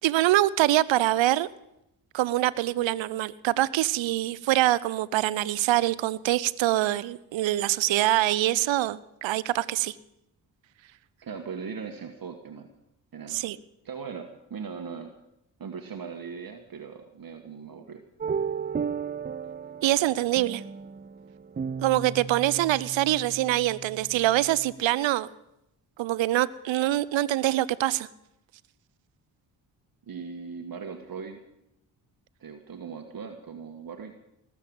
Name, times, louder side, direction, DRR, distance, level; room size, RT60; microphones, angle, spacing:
voice 1, 0.0-1.5 2.1-9.9 13.3-13.6 19.8-20.6 21.8-25.3 26.0-28.1, right 15 dB, 65° right, 20 dB, 0.8 m, -24 dB
voice 2, 11.2-12.7 13.1-13.4 13.8-15.1 15.6-18.0 30.1-31.4 32.4-34.1, right 6 dB, 45° right, 6 dB, 1.6 m, -39 dB
sound 1, 18.2-24.7, right 6 dB, 20° right, 0.5 m, -35 dB
19.5 x 7.7 x 8.7 m, 0.84 s
hypercardioid pair, 45°, 48 cm